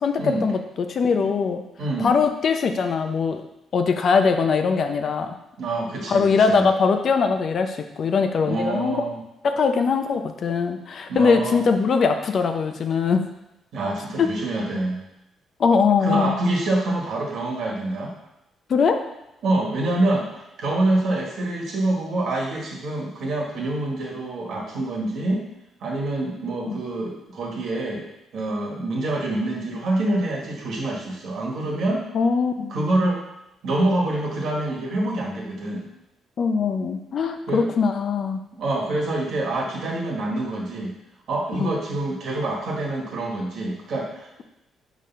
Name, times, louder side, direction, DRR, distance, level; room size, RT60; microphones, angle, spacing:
voice 1, 0.0-1.6 2.0-3.4 3.7-5.3 6.1-9.0 9.4-13.2 14.2-14.3 15.6-16.4 18.7-19.0 26.7-26.8 32.1-32.8 36.4-38.4 41.6-41.7, left 5 dB, 55° left, 6 dB, 0.6 m, -21 dB
voice 2, 1.8-2.1 5.6-6.7 8.4-9.2 11.1-11.6 13.7-15.0 16.0-18.1 19.4-20.3 20.6-25.4 25.8-28.0 28.3-32.0 32.7-33.2 33.6-35.9 37.5-37.7 38.6-40.9 41.3-44.4, right 2 dB, 70° right, -2 dB, 1.8 m, -26 dB
5.0 x 3.9 x 5.6 m, 0.91 s
cardioid pair, 90°, 0 cm